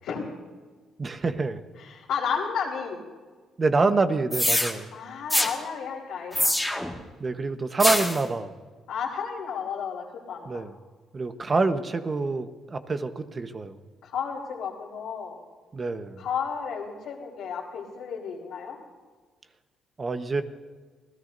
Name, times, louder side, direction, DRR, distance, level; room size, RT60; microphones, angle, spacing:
voice 1, 1.0-1.6 3.6-4.9 7.2-8.5 10.4-10.7 11.1-13.8 15.7-16.2 20.0-20.4, right 3 dB, 35° right, 8 dB, 1.1 m, -26 dB
voice 2, 1.8-3.0 4.9-6.6 8.9-10.6 14.0-15.4 16.2-18.8, left 6 dB, 85° left, -5 dB, 3.0 m, -32 dB
sound 1, 4.3-4.7 5.3-5.5 6.3-7.0 7.8-8.2, left 1 dB, 5° left, 1.9 m, -24 dB
27.5 x 17.0 x 2.7 m, 1.4 s
cardioid pair, 90°, 0 cm